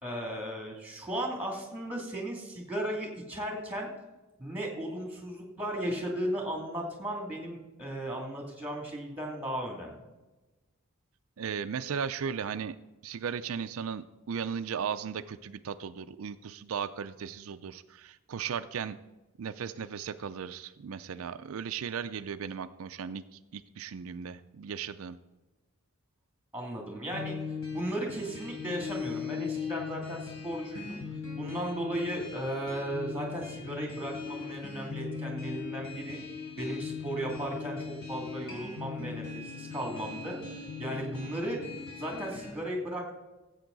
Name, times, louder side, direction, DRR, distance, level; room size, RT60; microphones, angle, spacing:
voice 1, 0.0-3.9 4.4-10.0 26.5-27.3 27.7-36.2 36.6-41.6 42.0-43.1, right 1 dB, 5° right, 1 dB, 2.6 m, -36 dB
voice 2, 11.4-12.8 13.0-19.0 19.4-25.2, right 7 dB, 70° right, 10 dB, 0.4 m, -36 dB
sound 1, 27.1-42.5, left 5 dB, 65° left, 3.8 m, -39 dB
15.5 x 8.1 x 4.0 m, 1.1 s
head